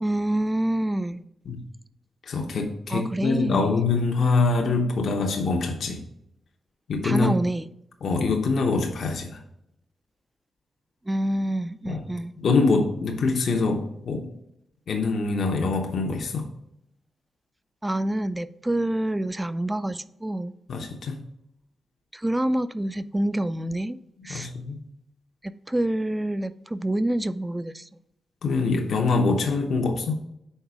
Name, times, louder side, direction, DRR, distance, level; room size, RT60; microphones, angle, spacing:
voice 1, 0.0-1.3 2.9-3.8 7.0-7.7 11.1-12.4 17.8-20.5 22.1-24.0 24.2-24.5 25.4-27.9, right 1 dB, 15° right, 0.3 m, -27 dB
voice 2, 2.3-6.0 6.9-7.3 8.0-9.4 11.9-12.0 12.4-14.2 14.9-16.5 20.7-21.2 24.3-24.8 28.4-30.2, left 4 dB, 70° left, 0.7 m, -24 dB
5.5 x 3.9 x 4.7 m
cardioid pair, 65°, 0 cm